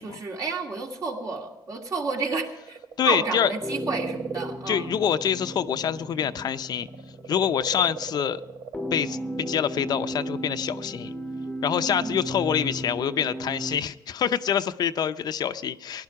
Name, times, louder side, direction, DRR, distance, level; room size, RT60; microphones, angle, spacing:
voice 1, 0.0-2.8 3.1-5.0 11.8-12.2, right 4 dB, 50° right, 2 dB, 2.4 m, -31 dB
sound 1, 2.6-6.1 6.4-9.0 10.0-10.1, right 7 dB, 80° right, 0.7 m, -38 dB
voice 2, 3.0-3.5 4.7-6.9 7.3-8.4 8.9-11.1 11.6-16.0, left 8 dB, 60° left, 11 dB, 0.6 m, -26 dB
sound 2, 3.6-13.8, right 1 dB, 10° left, 0.9 m, -35 dB
16.5 x 11.5 x 4.8 m, 1.0 s
cardioid pair, 115°, 8 cm